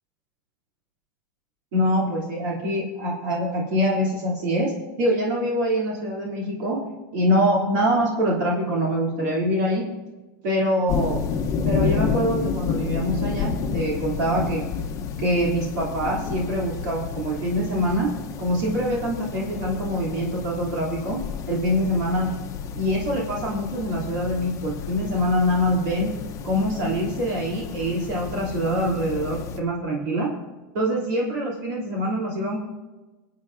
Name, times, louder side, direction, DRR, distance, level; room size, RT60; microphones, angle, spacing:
voice 1, 1.7-6.8 7.1-9.9 10.4-11.2 11.6-14.6 15.2-22.3 22.7-26.1 26.4-30.3 30.7-32.6, equal, 60° right, -4 dB, 3.1 m, -24 dB
sound 1, 10.9-29.6, left 6 dB, 30° left, 1.0 m, -30 dB
22.0 x 8.5 x 2.7 m, 1.2 s
supercardioid pair, 140°, 11 cm